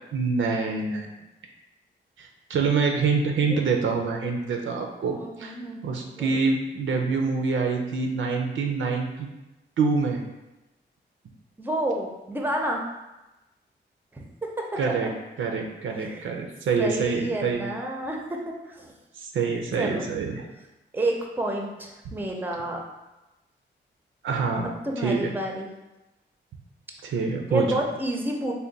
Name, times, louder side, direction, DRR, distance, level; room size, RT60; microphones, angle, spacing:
voice 1, 0.1-1.1 2.2-5.6 5.8-9.3 9.8-10.2 14.8-15.1 15.4-17.6 19.2-20.4 22.1-22.2 24.2-24.7 25.0-25.3 27.0-27.6, right 4 dB, 80° right, 2 dB, 0.5 m, -26 dB
voice 2, 5.1-6.3 11.6-12.8 14.1-14.8 16.0-16.3 16.8-19.0 19.8-20.0 20.3-20.5 20.9-22.8 24.8-25.7 27.5-28.5, right 1 dB, 10° right, 0 dB, 0.5 m, -30 dB
3.4 x 2.2 x 3.9 m, 1.0 s
cardioid pair, 90°, 20 cm